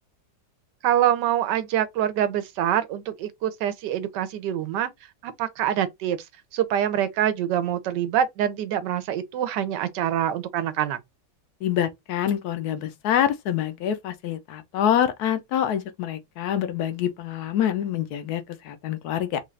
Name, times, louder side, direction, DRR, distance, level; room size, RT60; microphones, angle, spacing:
voice 1, 0.8-4.9 5.2-6.2 6.5-11.0, right 10 dB, 85° right, 1.3 m, -25 dB
voice 2, 11.6-19.4, left 10 dB, 70° left, 1.1 m, -26 dB
3.9 x 2.4 x 3.1 m
omnidirectional pair, 1.8 m